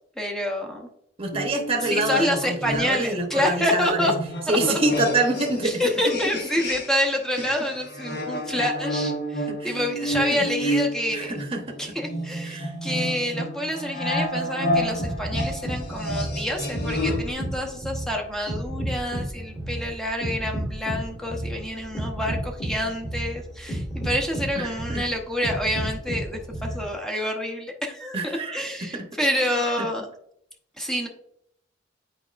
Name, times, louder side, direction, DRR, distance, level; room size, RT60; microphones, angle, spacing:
voice 1, 0.2-0.9 1.9-4.2 4.5-4.8 5.6-11.3 11.8-30.1 30.8-31.1, left 1 dB, 5° left, 1 dB, 0.8 m, -27 dB
voice 2, 1.2-4.1 4.5-6.2 8.5-8.7 9.5-9.8 10.3-10.4 10.6-10.8 11.1-11.8 12.4-12.7 24.5-25.0 28.1-29.1 29.4-29.5, right 2 dB, 30° right, 2 dB, 0.9 m, -27 dB
sound 1, 1.3-7.1 7.4-17.3, equal, 55° left, 1.2 m, -30 dB
sound 2, 14.8-26.9, right 1 dB, 30° left, 1.9 m, -32 dB
8.4 x 4.8 x 2.5 m, 0.72 s
head